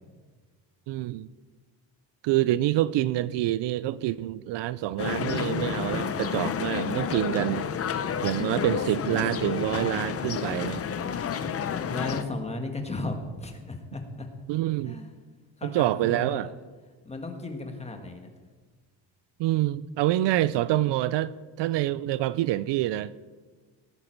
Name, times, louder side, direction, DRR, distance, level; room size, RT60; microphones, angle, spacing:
voice 1, 0.9-1.3 2.2-7.9 8.2-10.8 14.5-15.0 15.6-16.5 19.4-23.1, right 15 dB, 70° right, 18 dB, 0.5 m, -27 dB
sound 1, 5.0-12.2, left 7 dB, 30° left, 0.7 m, -30 dB
voice 2, 11.9-14.3 14.8-15.1 15.6-16.5 17.0-18.3, left 2 dB, 15° left, 5 dB, 1.4 m, -35 dB
18.0 x 9.6 x 4.5 m, 1.4 s
cardioid pair, 150°, 44 cm